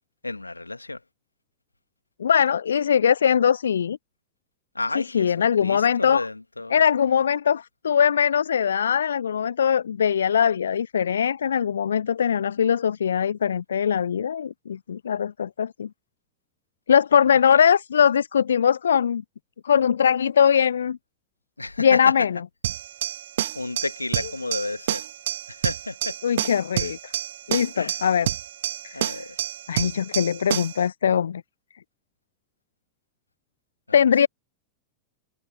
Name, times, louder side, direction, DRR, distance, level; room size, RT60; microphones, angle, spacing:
voice 1, 0.2-1.0 4.8-6.8 17.5-17.6 21.6-22.0 23.5-25.0 25.5-26.2 26.8-26.9 27.8-28.0 28.9-29.4, left 2 dB, 85° left, 2.2 m, -31 dB
voice 2, 2.2-4.0 4.9-6.3 6.7-15.9 16.9-19.2 19.6-21.0 21.8-22.4 26.2-27.1 27.5-28.3 28.8-29.1 29.7-31.4 33.9-34.3, left 8 dB, 70° left, 0.4 m, -21 dB
sound 1, 22.6-30.8, right 12 dB, 60° right, 1.9 m, -29 dB
figure-of-eight pair, 90°, 0 cm